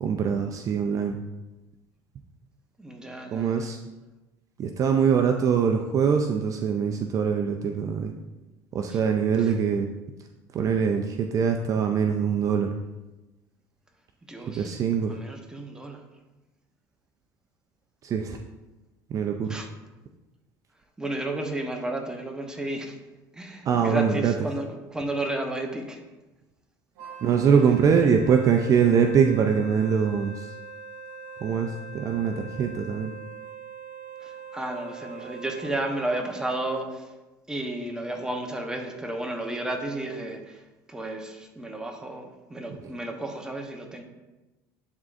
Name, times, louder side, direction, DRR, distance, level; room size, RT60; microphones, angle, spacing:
voice 1, 0.0-1.2 3.3-3.8 4.6-8.1 8.7-9.9 10.5-12.7 14.5-15.2 18.0-18.4 19.1-19.5 23.7-24.3 27.2-30.5 31.4-33.1, right 6 dB, 45° right, 4 dB, 0.4 m, -23 dB
voice 2, 2.8-3.7 8.9-9.0 9.4-9.6 14.2-14.8 15.1-16.0 19.5-19.7 21.0-23.0 23.3-26.0 28.0-28.1 34.2-37.1 37.5-44.0, right 1 dB, 10° right, 3 dB, 1.0 m, -33 dB
Wind instrument woodwind instrument, 26.9-36.2, right 5 dB, 65° right, 1.6 m, -42 dB
10.5 x 3.6 x 2.6 m, 1.1 s
supercardioid pair, 100°, 8 cm